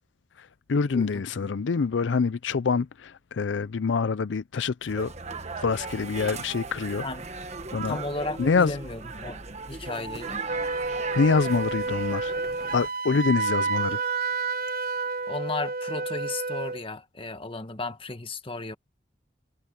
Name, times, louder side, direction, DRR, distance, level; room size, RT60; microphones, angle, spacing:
voice 1, 0.4-5.1 5.6-7.0 7.7-8.0 8.4-8.7 11.1-12.3 12.7-14.0, left 5 dB, 85° left, 0.5 m, -25 dB
voice 2, 0.9-1.5 7.0-7.3 7.8-9.4 9.7-10.4 15.3-18.8, left 2 dB, 30° left, 1.5 m, -35 dB
sound 1, 4.9-12.9, right 4 dB, 40° right, 1.4 m, -37 dB
Wind instrument woodwind instrument, 10.5-16.8, right 4 dB, 55° right, 0.9 m, -30 dB
head